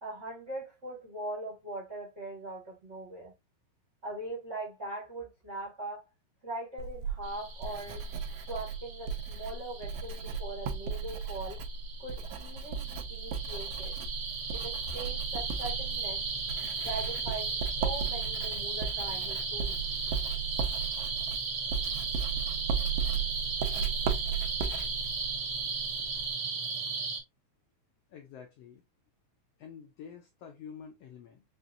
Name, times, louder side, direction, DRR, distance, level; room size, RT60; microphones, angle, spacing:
voice 1, 0.0-3.3 4.0-6.0 6.4-8.0 8.5-11.6 12.0-14.0 14.5-16.2 16.8-19.8, right 2 dB, 35° right, 1.2 m, -41 dB
Writing, 6.8-26.3, right 6 dB, 85° right, 2.1 m, -36 dB
sound 1, 7.2-27.2, right 4 dB, 60° right, 1.6 m, -36 dB
voice 2, 28.1-28.8 29.6-31.4, left 7 dB, 85° left, 1.4 m, -48 dB
5.6 x 2.4 x 2.5 m
omnidirectional pair, 3.5 m